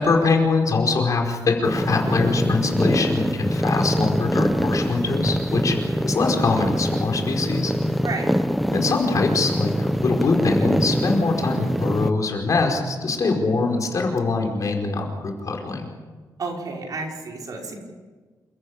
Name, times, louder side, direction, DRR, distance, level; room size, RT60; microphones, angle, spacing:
voice 1, 0.0-5.8 6.0-8.0 8.7-15.8, left 3 dB, 50° left, 2 dB, 4.9 m, -23 dB
sound 1, 1.6-12.1, equal, ahead, 0.9 m, -24 dB
voice 2, 8.0-8.3 16.4-17.7, right 3 dB, 60° right, -1 dB, 5.8 m, -31 dB
28.5 x 15.0 x 8.7 m, 1.4 s
wide cardioid pair, 130°, 7 cm